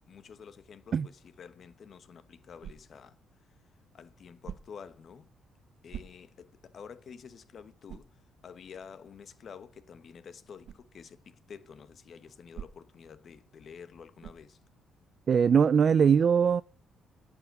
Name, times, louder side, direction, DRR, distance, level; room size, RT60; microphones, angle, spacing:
voice 1, 0.1-3.2 3.9-5.3 5.8-8.1 8.4-14.6, left 6 dB, 55° left, 1.2 m, -49 dB
sound 1, 2.6-3.1 4.4-4.9 5.9-6.5 7.0-7.1 7.9-8.2 10.6-10.9 12.5-13.0 14.2-14.6, right 9 dB, 70° right, 0.9 m, -45 dB
voice 2, 15.3-16.6, right 7 dB, 50° right, 0.4 m, -21 dB
11.0 x 5.7 x 7.3 m
cardioid pair, 90°, 0 cm